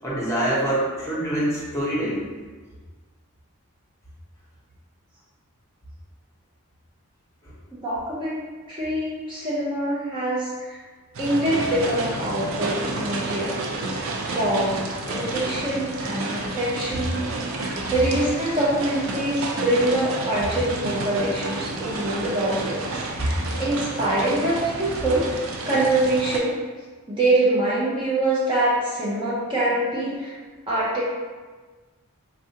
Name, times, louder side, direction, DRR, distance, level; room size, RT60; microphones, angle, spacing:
voice 1, 0.0-2.3 7.4-7.5 23.2-23.5, right 1 dB, 15° left, -7 dB, 0.9 m, -25 dB
voice 2, 7.7-10.8 11.2-13.6 13.9-14.0 14.3-14.8 15.1-17.2 17.5-22.8 23.2-26.5 27.1-30.4 30.7-31.1, right 1 dB, 25° right, -8 dB, 0.5 m, -24 dB
sound 1, 11.1-26.4, right 2 dB, 70° right, 0.4 m, -30 dB
4.2 x 2.5 x 2.8 m, 1.4 s
head